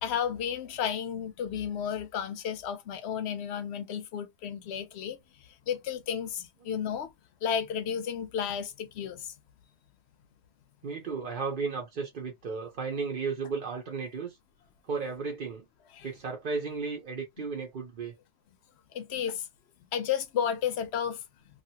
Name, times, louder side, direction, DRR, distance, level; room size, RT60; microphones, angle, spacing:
voice 1, 0.0-5.2 5.7-7.1 7.4-9.3 15.9-16.1 18.9-19.5 19.9-21.2, left 8 dB, 85° left, 0.9 m, -32 dB
voice 2, 10.8-14.4 14.9-15.7 16.0-18.1, right 4 dB, 55° right, 0.8 m, -34 dB
2.8 x 2.4 x 2.8 m
omnidirectional pair, 1.1 m